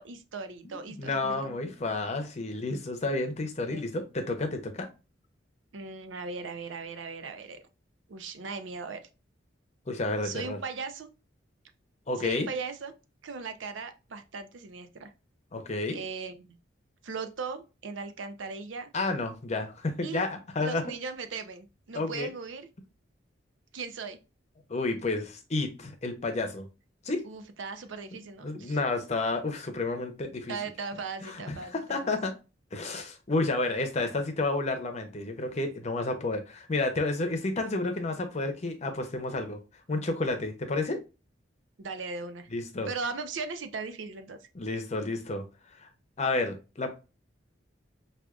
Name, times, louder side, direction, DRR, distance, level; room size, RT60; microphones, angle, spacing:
voice 1, 0.0-1.6 3.7-3.8 5.7-7.6 8.1-9.1 10.2-11.1 12.2-12.9 13.2-15.1 15.9-16.6 17.0-18.9 20.0-20.3 20.6-22.7 23.7-24.2 27.2-28.8 30.5-32.2 41.8-42.5 42.9-44.5, right 4 dB, 90° right, 0.5 m, -38 dB
voice 2, 0.6-4.9 9.9-10.6 12.1-12.5 15.5-16.0 18.9-20.8 21.9-22.3 24.7-26.7 27.0-27.2 28.4-30.6 31.2-32.3 32.7-39.6 39.9-41.0 42.5-42.9 44.5-45.4 45.8-45.9 46.2-47.0, left 2 dB, 35° left, 0.7 m, -31 dB
4.8 x 2.4 x 2.3 m
head